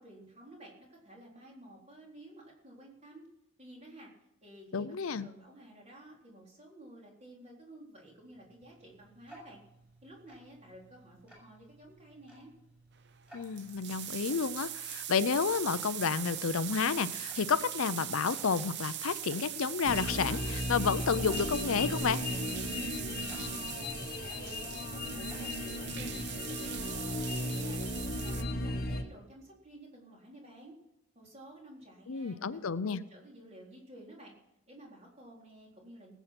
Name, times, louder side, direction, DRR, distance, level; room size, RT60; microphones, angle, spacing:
voice 1, 0.0-3.3 3.6-4.1 4.4-9.6 10.0-12.5 23.1-30.8 31.1-34.3 34.7-36.1, right 1 dB, 30° right, -2 dB, 4.0 m, -53 dB
voice 2, 4.7-5.3 13.3-22.2 32.1-33.0, left 5 dB, 70° left, 15 dB, 0.6 m, -31 dB
Tick-tock, 8.0-26.3, right 1 dB, 5° right, 6.4 m, -59 dB
sound 1, 13.1-13.2 13.3-28.4, right 11 dB, 50° right, 0.8 m, -41 dB
sound 2, 19.8-29.0, left 2 dB, 45° left, 1.2 m, -36 dB
19.0 x 8.2 x 6.0 m, 0.87 s
head